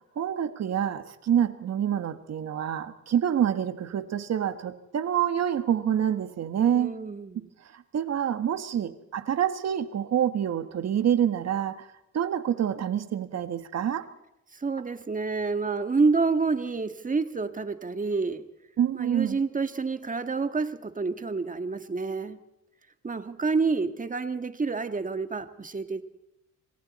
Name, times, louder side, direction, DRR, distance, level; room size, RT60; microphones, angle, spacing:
voice 1, 0.1-7.0 7.7-11.9 12.1-14.0 18.8-19.4, right 9 dB, 60° right, 10 dB, 1.6 m, -27 dB
voice 2, 6.7-7.5 14.5-18.4 18.9-22.4 23.0-26.0, right 4 dB, 25° right, 9 dB, 1.7 m, -28 dB
28.0 x 25.5 x 4.3 m, 0.89 s
cardioid pair, 90°, 30 cm